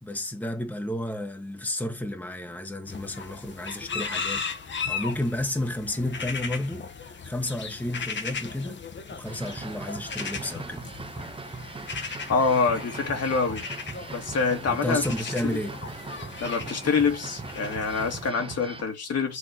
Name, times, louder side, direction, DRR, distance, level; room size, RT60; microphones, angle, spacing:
voice 1, 0.0-8.8 9.1-10.8 14.7-15.8, left 1 dB, 5° left, 1.3 m, -32 dB
sound 1, 2.9-18.3, left 5 dB, 40° left, 1.3 m, -37 dB
sound 2, 9.2-18.8, right 4 dB, 20° right, 0.7 m, -40 dB
voice 2, 12.3-13.6 14.1-15.6 16.4-19.4, left 5 dB, 55° left, 2.0 m, -26 dB
6.5 x 3.6 x 6.0 m
cardioid pair, 90°, 30 cm